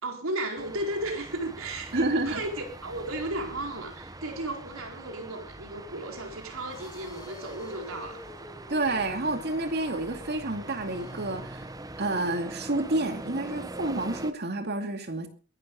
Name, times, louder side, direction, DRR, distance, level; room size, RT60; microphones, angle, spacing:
voice 1, 0.0-2.5 2.8-8.3, right 1 dB, 65° right, 3 dB, 4.2 m, -34 dB
sound 1, 0.6-14.3, right 2 dB, 15° right, 0.8 m, -43 dB
voice 2, 1.9-2.4 8.7-11.7 12.0-15.3, right 2 dB, 50° right, 6 dB, 2.5 m, -29 dB
sound 2, 6.7-11.6, left 1 dB, 20° left, 3.5 m, -49 dB
22.0 x 12.0 x 3.9 m, 0.38 s
head